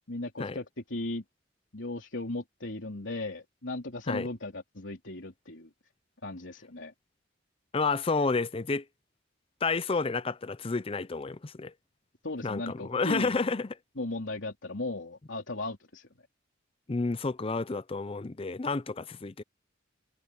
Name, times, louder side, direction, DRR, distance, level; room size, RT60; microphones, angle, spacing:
voice 1, 0.1-1.2 1.7-5.7 6.2-6.9 12.2-13.4 14.0-16.1, left 2 dB, 70° left, 3.5 m, -36 dB
voice 2, 7.7-8.8 9.6-11.7 12.4-13.8 16.9-19.4, left 4 dB, 30° left, 0.5 m, -30 dB
head